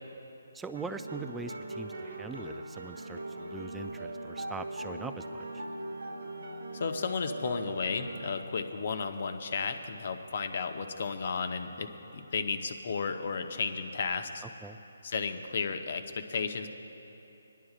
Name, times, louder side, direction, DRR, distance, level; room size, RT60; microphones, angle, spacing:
voice 1, 0.5-5.5 14.6-14.8, right 4 dB, 5° right, 8 dB, 0.3 m, -42 dB
sound 1, 0.7-8.4, right 1 dB, 85° right, 1.1 m, -40 dB
voice 2, 6.7-11.9 12.1-14.4 15.0-16.7, left 5 dB, 55° left, 7 dB, 0.8 m, -33 dB
21.0 x 11.0 x 2.4 m, 3.0 s
hypercardioid pair, 155°, 0 cm